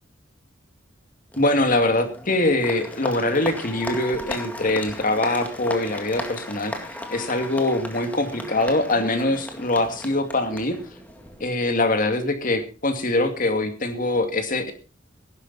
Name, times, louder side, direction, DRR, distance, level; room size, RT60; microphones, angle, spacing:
Applause, 1.3-11.4, left 1 dB, 10° left, 1.9 m, -36 dB
voice 1, 1.4-6.7 7.1-10.8 11.4-14.7, left 2 dB, 45° left, 6 dB, 2.4 m, -23 dB
17.5 x 11.0 x 4.2 m, 0.33 s
head